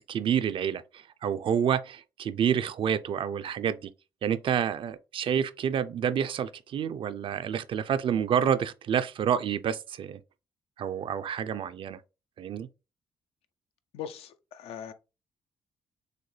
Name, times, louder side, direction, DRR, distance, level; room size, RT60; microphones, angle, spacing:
voice 1, 0.1-3.9 4.2-10.2 10.8-12.0 12.4-12.7, right 8 dB, 60° right, 0.4 m, -28 dB
voice 2, 13.9-14.9, left 9 dB, 85° left, 0.5 m, -40 dB
6.5 x 2.2 x 3.2 m
cardioid pair, 80°, 10 cm